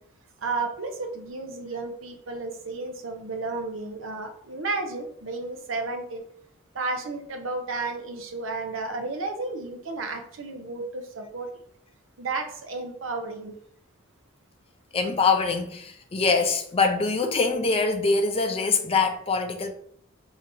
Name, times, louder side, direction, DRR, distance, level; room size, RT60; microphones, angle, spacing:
voice 1, 0.4-6.2 6.7-11.5 12.2-13.6, right 3 dB, 75° right, 0.7 m, -32 dB
voice 2, 14.9-19.7, left 4 dB, 30° left, 0.4 m, -24 dB
4.9 x 2.8 x 2.7 m
head